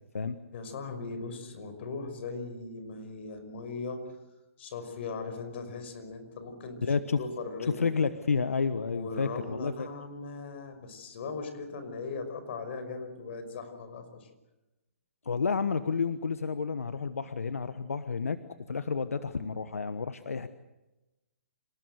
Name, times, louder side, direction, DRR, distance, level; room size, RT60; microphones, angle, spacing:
voice 1, 0.5-4.2 4.6-6.8 7.2-7.9 8.9-14.3, left 4 dB, 55° left, 8 dB, 5.8 m, -39 dB
voice 2, 6.8-7.2 7.8-9.9 15.2-18.4 18.7-20.5, left 5 dB, 85° left, 11 dB, 1.2 m, -30 dB
27.0 x 18.0 x 8.0 m, 1.0 s
hypercardioid pair, 140°, 8 cm